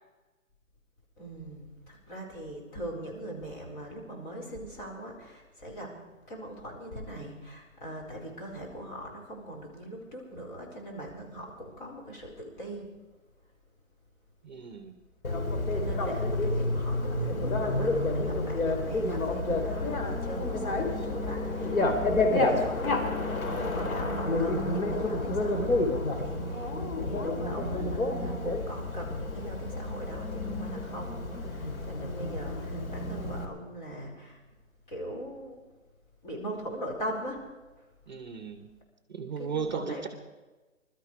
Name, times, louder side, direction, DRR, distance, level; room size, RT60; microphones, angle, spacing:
voice 1, 1.2-5.9 6.3-12.9 15.7-26.7 27.0-34.4 34.9-35.6 36.2-37.4 39.4-40.1, right 1 dB, 35° left, -2 dB, 4.4 m, -41 dB
voice 2, 14.4-14.9 38.1-38.7 39.1-40.1, right 6 dB, 35° right, 8 dB, 0.9 m, -36 dB
Bicycle, 15.2-33.4, left 2 dB, 85° left, 3.2 m, -29 dB
21.0 x 13.0 x 4.9 m, 1.2 s
hypercardioid pair, 170°, 41 cm